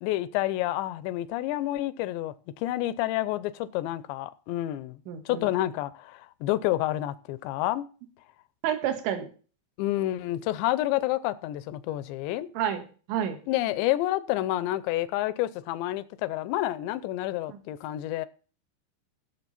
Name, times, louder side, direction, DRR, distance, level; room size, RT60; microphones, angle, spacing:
voice 1, 0.0-5.0 5.3-7.9 9.8-12.5 13.5-18.3, left 15 dB, 80° left, 2.8 m, -29 dB
voice 2, 5.1-5.4 8.6-9.3 12.6-13.4 17.5-17.6, right 9 dB, 75° right, 3.8 m, -30 dB
18.0 x 7.1 x 4.2 m
omnidirectional pair, 5.5 m